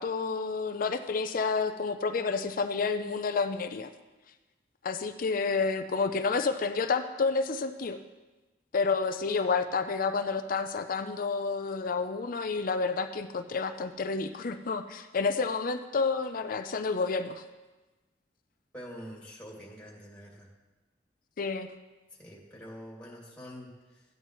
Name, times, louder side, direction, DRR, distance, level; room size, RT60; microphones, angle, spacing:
voice 1, 0.0-3.9 4.8-8.0 8.7-17.4 21.4-21.7, left 4 dB, 50° left, 8 dB, 0.5 m, -30 dB
voice 2, 18.7-20.5 22.2-24.0, equal, 5° left, -4 dB, 2.4 m, -46 dB
15.0 x 9.1 x 3.1 m, 1.2 s
head